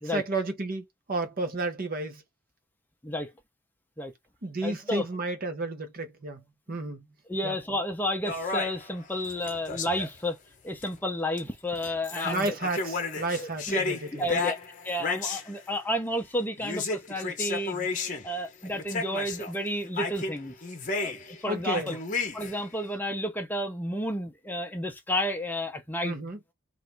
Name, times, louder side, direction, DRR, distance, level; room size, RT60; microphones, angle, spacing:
voice 1, 0.0-2.2 4.4-6.4 6.7-7.1 7.4-7.6 12.2-14.3 21.5-22.0 26.0-26.4, right 2 dB, 40° right, 0.8 m, -32 dB
voice 2, 4.6-5.0 7.3-10.4 10.6-12.5 13.4-13.8 14.1-14.6 14.8-17.9 18.2-20.5 21.0-22.0 22.3-26.2, left 1 dB, 10° left, 0.6 m, -31 dB
sound 1, 8.2-10.2 10.8-10.9 11.4-11.5 11.8-15.5 16.6-18.3 18.6-19.6 20.0-21.4 21.7-22.6, left 4 dB, 35° left, 0.9 m, -33 dB
3.2 x 2.5 x 4.5 m
head